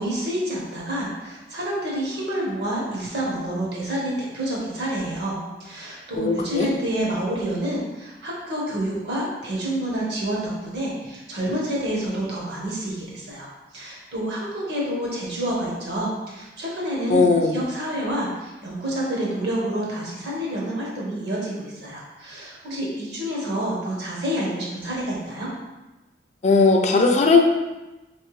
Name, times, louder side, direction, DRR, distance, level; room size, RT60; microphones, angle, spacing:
voice 1, 0.0-13.5 13.7-17.2 17.5-25.5, right 1 dB, 70° right, -3 dB, 1.1 m, -28 dB
voice 2, 6.1-6.7 17.1-17.6 26.4-27.4, left 4 dB, 40° left, 3 dB, 0.3 m, -17 dB
3.3 x 3.3 x 3.1 m, 1.1 s
head